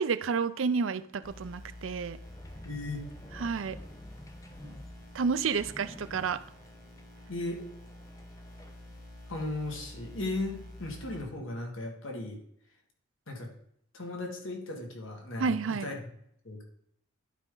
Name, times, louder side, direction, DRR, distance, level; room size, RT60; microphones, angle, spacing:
voice 1, 0.0-2.2 3.3-3.8 4.6-4.7 5.1-6.4 15.4-15.9, right 5 dB, 75° right, 13 dB, 0.5 m, -30 dB
sound 1, 1.2-11.2, left 1 dB, 50° left, 1.6 m, -49 dB
sound 2, 2.2-9.0, left 1 dB, 15° left, 0.7 m, -51 dB
voice 2, 2.6-3.1 7.3-7.6 9.3-12.4 13.3-13.5 13.9-16.0 16.4-16.6, left 2 dB, 85° left, 1 dB, 1.8 m, -36 dB
11.5 x 5.2 x 3.8 m, 0.70 s
head